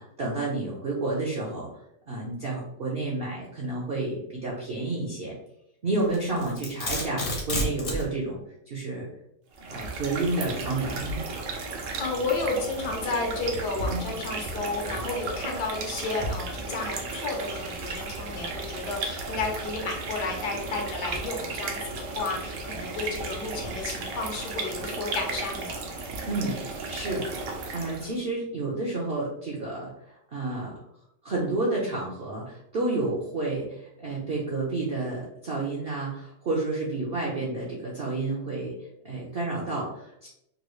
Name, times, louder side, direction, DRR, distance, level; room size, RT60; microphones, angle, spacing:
voice 1, 0.0-1.7 2.1-5.3 5.8-8.4 8.7-9.1 9.6-11.2 13.9-14.1 26.3-26.6 26.9-27.3 27.7-29.9 30.3-30.8 31.2-38.8 39.0-40.3, right 2 dB, 60° right, -4 dB, 0.6 m, -30 dB
Domestic sounds home sounds, 6.1-8.1, left 1 dB, 45° left, 0.7 m, -29 dB
sound 1, 9.5-28.2, right 3 dB, 80° right, 1.3 m, -34 dB
voice 2, 12.0-25.9, left 3 dB, 70° left, 1 dB, 1.3 m, -32 dB
3.9 x 2.3 x 3.0 m, 0.77 s
omnidirectional pair, 1.9 m